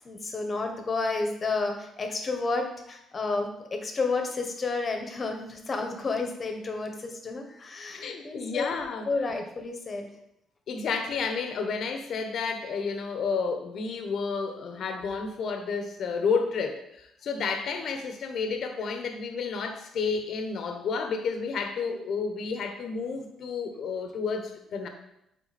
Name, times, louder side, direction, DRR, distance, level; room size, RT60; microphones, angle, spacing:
voice 1, 0.0-8.6 9.1-10.1, left 3 dB, 35° left, 5 dB, 1.2 m, -31 dB
voice 2, 7.9-9.1 10.7-24.9, left 5 dB, 60° left, 6 dB, 1.0 m, -31 dB
9.2 x 4.0 x 4.2 m, 0.82 s
cardioid pair, 110°, 0 cm